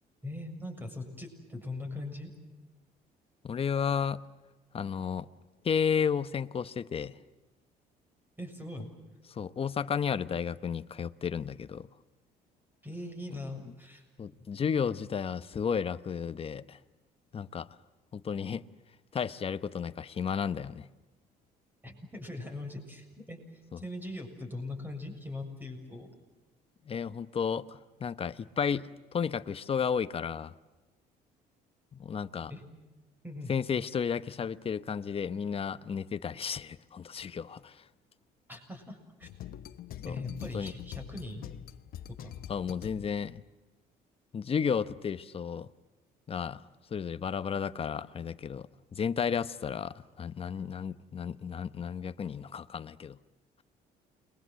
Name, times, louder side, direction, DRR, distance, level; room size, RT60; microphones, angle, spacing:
voice 1, 0.2-2.3 8.4-8.9 12.8-14.0 21.8-26.1 32.5-32.6 33.2-33.5 38.5-39.3 40.0-41.5 42.2-42.3, left 2 dB, 10° right, 7.0 m, -41 dB
voice 2, 3.4-4.3 4.7-5.3 5.6-7.2 9.3-11.9 14.2-16.8 17.3-17.7 18.1-18.6 19.1-20.9 26.9-30.5 31.9-32.5 33.5-37.8 40.0-40.2 40.5-40.7 42.5-43.4 44.3-45.7 46.3-46.6 46.9-53.2, left 7 dB, 35° left, 1.0 m, -33 dB
sound 1, 39.2-43.4, left 11 dB, 60° left, 1.1 m, -44 dB
29.5 x 23.0 x 7.7 m
cardioid pair, 110°, 17 cm